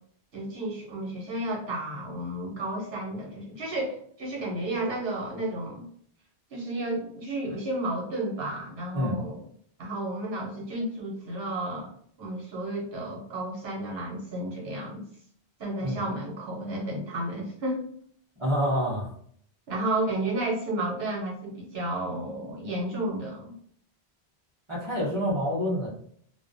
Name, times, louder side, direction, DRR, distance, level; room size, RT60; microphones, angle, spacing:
voice 1, 0.3-5.9 6.5-9.4 9.8-11.9 12.2-15.0 15.6-17.9 19.7-23.5 25.1-25.2, right 1 dB, 70° right, -2 dB, 1.0 m, -32 dB
voice 2, 18.4-19.1 24.7-25.9, equal, 30° right, -11 dB, 0.8 m, -27 dB
2.4 x 2.1 x 2.5 m, 0.63 s
omnidirectional pair, 1.1 m